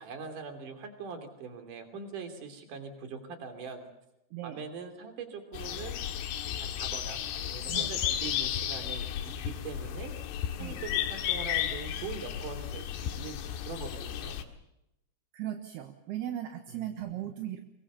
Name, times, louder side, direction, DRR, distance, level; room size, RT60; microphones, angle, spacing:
voice 1, 0.0-3.9 4.4-6.0 6.6-10.1 10.6-14.4 16.7-17.3, right 5 dB, 45° right, 7 dB, 4.1 m, -42 dB
sound 1, 5.5-14.4, left 10 dB, 80° left, 4.3 m, -34 dB
voice 2, 15.3-17.6, right 12 dB, 65° right, 6 dB, 2.9 m, -37 dB
24.5 x 22.5 x 6.9 m, 0.87 s
omnidirectional pair, 5.9 m